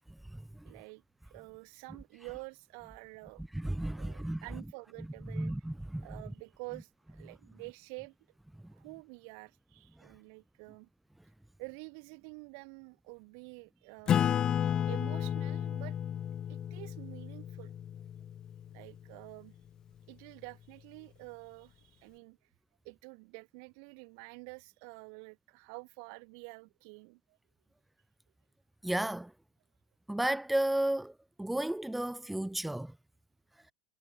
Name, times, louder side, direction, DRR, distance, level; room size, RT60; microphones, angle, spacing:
voice 1, 0.6-1.0 1.3-3.4 4.0-5.5 6.0-8.1 8.7-10.9 11.6-14.4 14.9-16.0 16.5-17.7 18.7-19.5 20.1-22.4 22.8-27.4, right 40 dB or more, 65° right, 6.0 m, -48 dB
voice 2, 3.5-4.4 5.3-6.1 28.8-29.3 30.1-31.1 31.4-32.9, right 1 dB, 5° right, 1.4 m, -32 dB
Acoustic guitar / Strum, 14.1-19.1, left 9 dB, 35° left, 1.3 m, -32 dB
hypercardioid pair, 100°, 2 cm